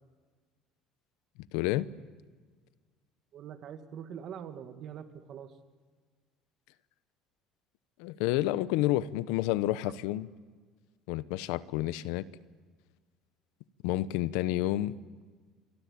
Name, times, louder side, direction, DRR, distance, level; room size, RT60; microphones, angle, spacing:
voice 1, 1.5-1.9 8.0-10.3 11.1-12.3 13.8-15.0, left 15 dB, 80° left, 17 dB, 0.9 m, -29 dB
voice 2, 3.3-5.6 9.8-9.9, right 8 dB, 45° right, 9 dB, 2.0 m, -44 dB
28.0 x 23.5 x 8.6 m, 1.5 s
cardioid pair, 150°, 0 cm